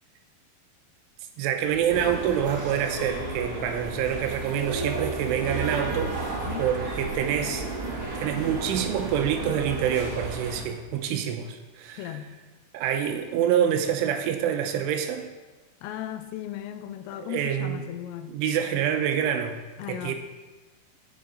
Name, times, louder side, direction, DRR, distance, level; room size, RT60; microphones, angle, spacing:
voice 1, 1.4-6.2 6.6-7.7 8.2-12.1 12.7-15.3 17.3-17.8 18.3-19.6 19.9-20.1, right 9 dB, 80° right, 6 dB, 3.1 m, -26 dB
sound 1, 1.6-7.0, equal, 45° left, 1.9 m, -48 dB
sound 2, 1.9-10.6, right 3 dB, 35° right, 2.3 m, -33 dB
voice 2, 12.0-12.4 15.8-18.4 19.8-20.2, left 12 dB, 85° left, 9 dB, 3.3 m, -36 dB
13.5 x 8.6 x 3.9 m, 1.3 s
omnidirectional pair, 5.9 m